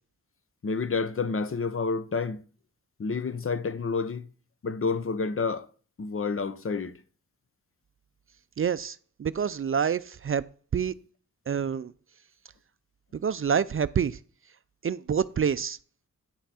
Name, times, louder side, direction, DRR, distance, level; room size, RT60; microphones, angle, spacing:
voice 1, 0.6-2.4 3.0-4.3 4.6-5.7 6.0-7.0, left 4 dB, 40° left, 0.8 m, -29 dB
voice 2, 8.6-10.4 10.7-10.9 11.5-11.9 13.1-14.2 14.8-15.8, right 7 dB, 40° right, 0.4 m, -27 dB
9.8 x 5.8 x 4.2 m
cardioid pair, 70°, 32 cm